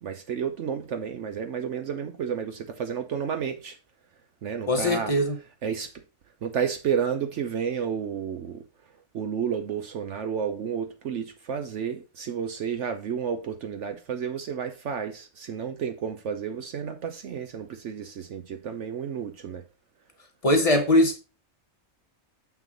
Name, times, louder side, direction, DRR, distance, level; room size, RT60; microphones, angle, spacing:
voice 1, 0.0-3.8 4.4-5.1 5.6-5.9 6.4-8.6 9.1-19.6, right 7 dB, 65° right, 1.0 m, -31 dB
voice 2, 4.7-5.4 20.4-21.2, left 1 dB, 30° left, 1.0 m, -21 dB
7.3 x 6.1 x 3.9 m
omnidirectional pair, 1.4 m